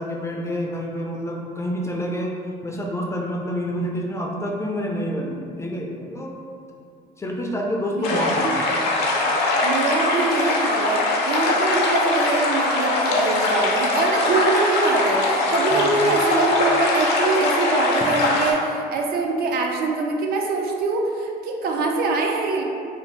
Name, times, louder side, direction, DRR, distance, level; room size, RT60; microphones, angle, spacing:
voice 1, 0.0-2.3 2.6-6.3 7.2-8.6 15.7-16.1, equal, 15° left, -1 dB, 0.3 m, -28 dB
voice 2, 7.9-8.6 9.6-22.6, right 3 dB, 65° right, 1 dB, 0.4 m, -24 dB
sound 1, 8.0-18.5, left 2 dB, 85° left, 0.5 m, -21 dB
2.6 x 2.3 x 3.1 m, 2.4 s
cardioid pair, 110°, 17 cm